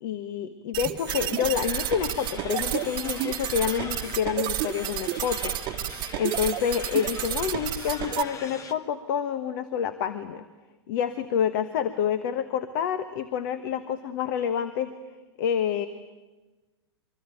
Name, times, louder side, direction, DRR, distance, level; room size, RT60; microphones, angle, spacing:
voice 1, 0.0-5.5 6.1-10.4 10.9-14.9 15.4-15.9, left 8 dB, 45° left, 11 dB, 1.4 m, -28 dB
sound 1, 0.7-8.2, right 13 dB, 30° right, 1.4 m, -31 dB
sound 2, 1.1-8.7, left 4 dB, 20° left, 1.8 m, -41 dB
24.0 x 24.0 x 9.2 m, 1.2 s
figure-of-eight pair, 105°, 15 cm